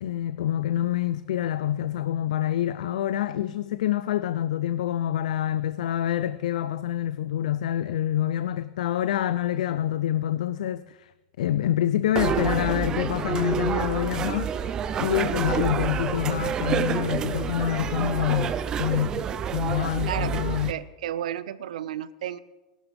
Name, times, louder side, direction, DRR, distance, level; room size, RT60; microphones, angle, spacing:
voice 1, 0.0-11.1 11.4-14.5 15.0-20.7, left 11 dB, 70° left, 0.4 m, -26 dB
sound 1, 12.2-20.7, right 7 dB, 15° right, 0.4 m, -28 dB
voice 2, 20.1-20.4 20.7-22.4, right 11 dB, 75° right, 0.5 m, -32 dB
20.5 x 11.5 x 3.4 m
supercardioid pair, 170°, 4 cm